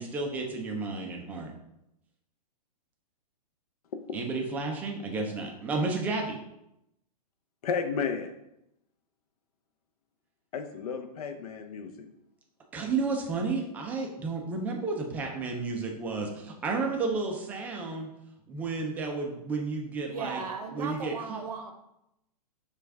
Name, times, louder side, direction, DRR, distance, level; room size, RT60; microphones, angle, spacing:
voice 1, 0.0-1.5 4.1-6.4 12.7-18.1 18.5-20.4 20.7-21.4, right 3 dB, 10° right, 1 dB, 0.3 m, -32 dB
voice 2, 7.6-8.3 10.5-12.1, left 6 dB, 65° left, 7 dB, 0.6 m, -32 dB
voice 3, 20.1-21.7, right 4 dB, 65° right, 5 dB, 0.7 m, -36 dB
5.9 x 2.3 x 3.4 m, 0.84 s
hypercardioid pair, 150°, 21 cm